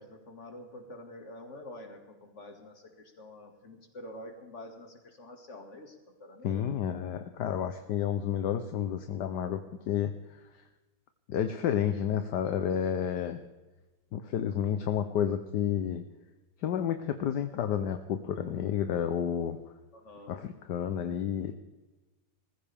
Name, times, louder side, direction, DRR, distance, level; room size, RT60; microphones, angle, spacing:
voice 1, 0.0-6.7 19.9-20.4, left 1 dB, 35° left, 4 dB, 2.3 m, -47 dB
voice 2, 6.4-10.4 11.3-13.4 14.1-16.0 16.6-19.6 20.3-21.5, left 9 dB, 65° left, 8 dB, 1.2 m, -30 dB
20.0 x 15.0 x 3.5 m, 1.2 s
omnidirectional pair, 2.3 m